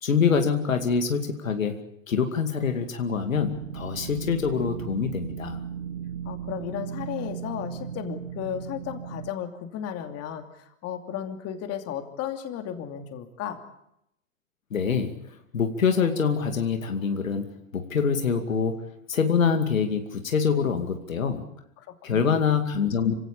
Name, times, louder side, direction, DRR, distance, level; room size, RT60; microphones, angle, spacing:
voice 1, 0.0-1.7 2.1-5.6 14.7-15.2 15.5-17.5 17.7-18.8 19.1-21.5 22.0-23.1, left 6 dB, 80° left, 6 dB, 2.5 m, -25 dB
sound 1, 3.3-9.3, right 8 dB, 85° right, 1.8 m, -36 dB
voice 2, 6.2-13.6 21.8-22.4, left 9 dB, 40° left, 6 dB, 2.8 m, -34 dB
26.5 x 17.0 x 8.6 m, 0.79 s
hypercardioid pair, 100°, 39 cm